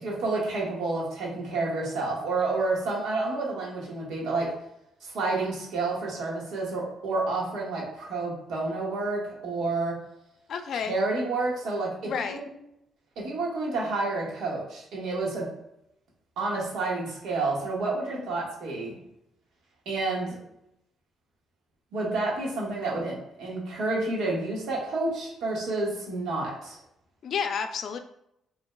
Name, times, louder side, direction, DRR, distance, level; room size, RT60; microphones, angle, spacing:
voice 1, 0.0-4.5 5.0-10.0 10.8-12.4 13.2-15.4 16.4-18.9 19.8-20.4 21.9-26.8, right 3 dB, 80° right, -3 dB, 1.5 m, -29 dB
voice 2, 10.5-11.0 12.0-12.4 18.1-18.3 27.2-28.0, left 6 dB, 65° left, 8 dB, 0.4 m, -31 dB
5.4 x 3.3 x 2.2 m, 0.80 s
cardioid pair, 90°, 0 cm